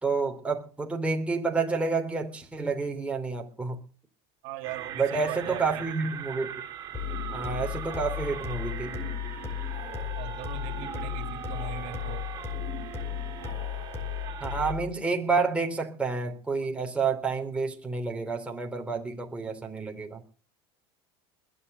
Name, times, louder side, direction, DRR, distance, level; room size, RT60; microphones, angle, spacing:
voice 1, 0.0-3.8 5.0-6.5 7.3-9.0 14.4-20.2, right 4 dB, 10° right, 3.5 m, -29 dB
voice 2, 4.4-5.8 10.1-12.2, right 10 dB, 65° right, 2.6 m, -39 dB
sound 1, 4.6-14.7, right 9 dB, 30° right, 5.3 m, -40 dB
sound 2, 6.9-14.3, right 1 dB, 35° left, 7.0 m, -46 dB
sound 3, 6.9-14.9, left 10 dB, 20° left, 4.6 m, -35 dB
21.0 x 8.2 x 8.0 m
supercardioid pair, 110°, 13 cm